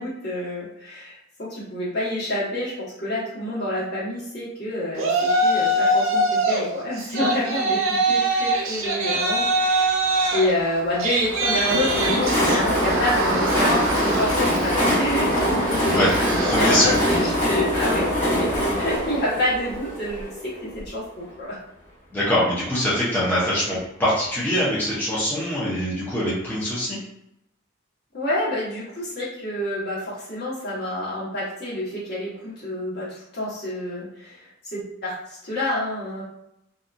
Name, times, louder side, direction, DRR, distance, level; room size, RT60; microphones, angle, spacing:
voice 1, 0.0-10.0 10.3-21.6 28.1-35.2 35.4-36.2, left 1 dB, 55° left, -8 dB, 1.3 m, -28 dB
Yell, 5.0-6.6 7.0-17.4, right 2 dB, 90° right, 0.5 m, -24 dB
Train, 11.2-20.9, equal, 35° left, 1.4 m, -23 dB
voice 2, 15.9-17.0 22.1-27.0, equal, 10° left, -9 dB, 0.6 m, -23 dB
2.7 x 2.3 x 2.5 m, 0.83 s
head